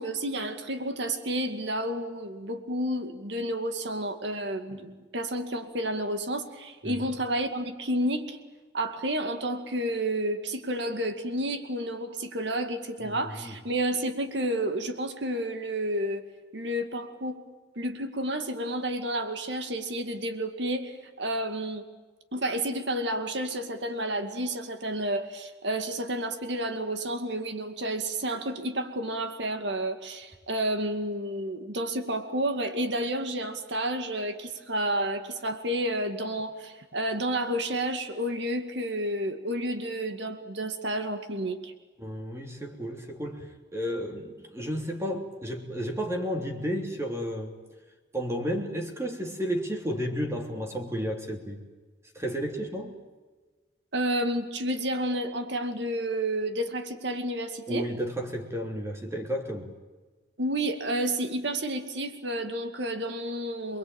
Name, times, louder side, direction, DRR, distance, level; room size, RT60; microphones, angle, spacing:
voice 1, 0.0-8.4 8.7-16.2 16.5-17.4 17.8-21.8 22.3-41.7 53.9-57.9 60.4-63.8, right 1 dB, 65° right, 7 dB, 2.4 m, -30 dB
voice 2, 13.0-13.5 42.0-47.6 48.1-51.6 52.1-53.0 57.7-59.7, equal, 15° right, 2 dB, 3.3 m, -32 dB
28.0 x 21.5 x 9.0 m, 1.3 s
head